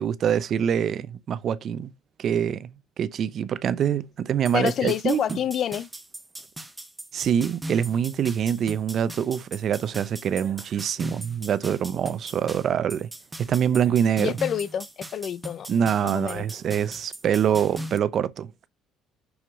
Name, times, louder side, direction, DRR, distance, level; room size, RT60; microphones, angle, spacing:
voice 1, 0.0-1.9 2.2-2.7 3.0-5.2 7.1-13.1 13.4-14.3 15.7-18.5, right 8 dB, 50° right, 0.7 m, -25 dB
voice 2, 4.5-5.9 14.2-15.7 16.0-16.4, left 9 dB, 50° left, 0.6 m, -28 dB
sound 1, 4.5-18.0, right 1 dB, 10° right, 1.3 m, -39 dB
6.4 x 6.1 x 6.2 m
cardioid pair, 105°, 0 cm